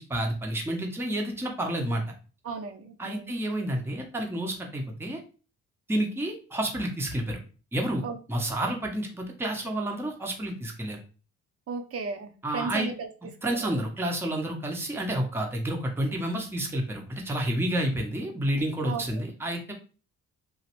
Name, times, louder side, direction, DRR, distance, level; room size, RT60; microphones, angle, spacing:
voice 1, 0.0-2.0 3.0-5.2 5.9-7.4 7.7-8.0 8.3-11.0 12.4-12.9 13.4-19.7, right 1 dB, 10° right, 1 dB, 0.7 m, -30 dB
voice 2, 2.4-3.4 8.0-8.2 11.7-13.1 13.4-13.7 18.8-19.1, right 4 dB, 50° right, 7 dB, 0.6 m, -35 dB
3.1 x 2.3 x 2.9 m, 0.36 s
cardioid pair, 90°, 30 cm